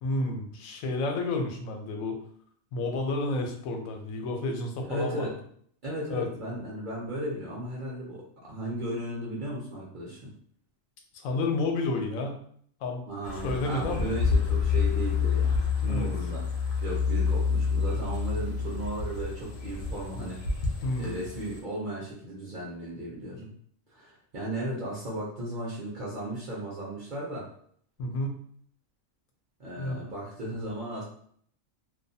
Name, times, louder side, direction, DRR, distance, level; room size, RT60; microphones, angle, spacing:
voice 1, 0.0-2.2 2.7-5.3 6.1-6.3 11.2-12.4 12.8-13.0 13.4-14.1 15.9-16.1 20.8-21.1 28.0-28.4 29.8-30.0, left 2 dB, 85° left, 3 dB, 1.0 m, -30 dB
voice 2, 4.9-5.3 5.8-10.3 13.1-16.6 16.8-20.4 21.0-23.5 23.9-27.5 29.6-31.0, right 1 dB, 50° right, -5 dB, 0.6 m, -35 dB
sound 1, 13.2-21.6, left 5 dB, 55° left, 0.6 m, -28 dB
2.4 x 2.3 x 2.6 m, 0.62 s
omnidirectional pair, 1.4 m